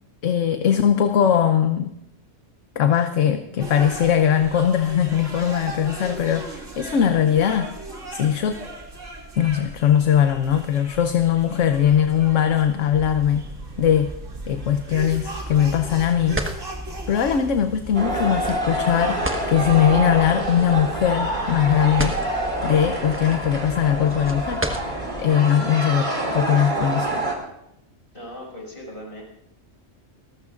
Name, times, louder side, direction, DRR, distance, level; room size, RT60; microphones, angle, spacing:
voice 1, 0.2-1.9 2.8-7.7 8.1-8.6 9.4-13.5 13.8-14.1 14.5-16.4 17.1-19.2 19.5-22.2 22.6-24.6 25.2-27.1, left 9 dB, 75° left, 8 dB, 1.1 m, -20 dB
sound 1, 3.6-23.0, right 2 dB, 80° right, 3.0 m, -39 dB
sound 2, 12.9-25.2, right 1 dB, 10° right, 1.1 m, -34 dB
sound 3, 17.9-27.3, right 2 dB, 40° right, 2.6 m, -27 dB
voice 2, 28.1-29.2, left 1 dB, 45° left, -2 dB, 5.9 m, -38 dB
29.5 x 14.5 x 2.5 m, 0.80 s
omnidirectional pair, 1.3 m